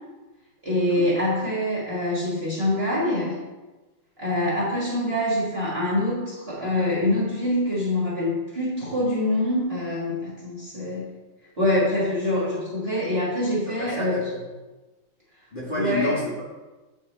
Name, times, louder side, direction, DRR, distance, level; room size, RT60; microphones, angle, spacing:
voice 1, 0.6-3.4 4.2-11.1 11.6-14.2 15.8-16.1, left 1 dB, 30° right, -6 dB, 1.6 m, -25 dB
voice 2, 13.8-14.4 15.5-16.4, left 2 dB, 25° left, -8 dB, 1.7 m, -29 dB
9.8 x 3.5 x 4.2 m, 1.2 s
omnidirectional pair, 2.3 m